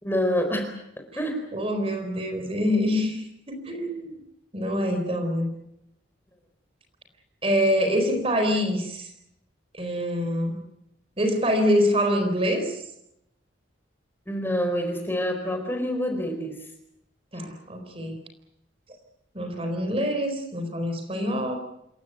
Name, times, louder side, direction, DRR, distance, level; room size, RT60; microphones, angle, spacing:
voice 1, 0.0-0.7 1.2-1.4 14.3-16.6, equal, 10° left, 5 dB, 4.3 m, -26 dB
voice 2, 1.5-4.2 4.5-5.5 7.4-9.1 9.7-10.6 11.2-12.8 17.3-18.2 19.3-21.6, equal, 30° right, 5 dB, 4.2 m, -25 dB
28.0 x 16.5 x 9.3 m, 0.82 s
head